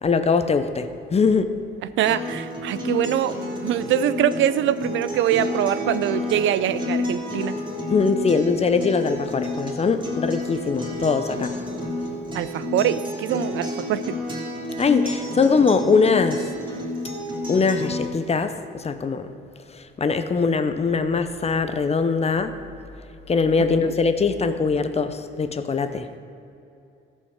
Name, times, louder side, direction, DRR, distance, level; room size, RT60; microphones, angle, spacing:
voice 1, 0.0-1.6 7.9-11.5 14.8-16.5 17.5-19.3 19.8-22.5 23.3-26.1, left 4 dB, 30° left, 9 dB, 0.7 m, -22 dB
voice 2, 2.0-3.4 3.6-7.5 12.3-14.2 23.6-23.9, right 11 dB, 75° right, 14 dB, 0.5 m, -23 dB
Acoustic guitar, 2.1-18.1, left 2 dB, 25° right, 3.0 m, -30 dB
14.0 x 5.5 x 6.5 m, 2.7 s
cardioid pair, 90°, 20 cm